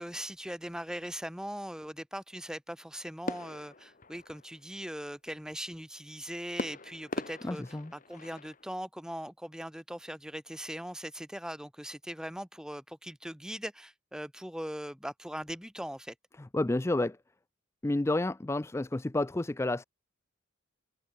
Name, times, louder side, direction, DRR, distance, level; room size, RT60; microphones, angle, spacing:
voice 1, 0.0-16.1, equal, 5° right, 2.1 m, -40 dB
sound 1, 3.3-4.8 6.6-8.7, left 2 dB, 40° left, 1.6 m, -41 dB
voice 2, 7.4-7.9 16.5-17.2 17.8-19.8, left 2 dB, 15° left, 0.3 m, -30 dB
head